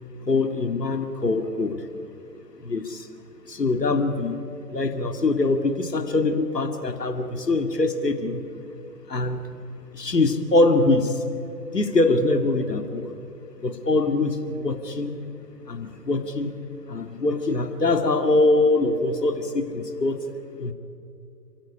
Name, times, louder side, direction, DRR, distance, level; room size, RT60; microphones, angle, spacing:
voice 1, 0.3-1.8 2.7-2.8 3.6-4.3 4.7-8.4 9.1-9.4 10.0-11.1 11.7-12.9 13.6-15.1 15.7-16.5 16.9-20.1 20.6-20.7, left 2 dB, 85° left, 6 dB, 2.4 m, -23 dB
30.0 x 15.0 x 10.0 m, 2.6 s
figure-of-eight pair, 125°, 47 cm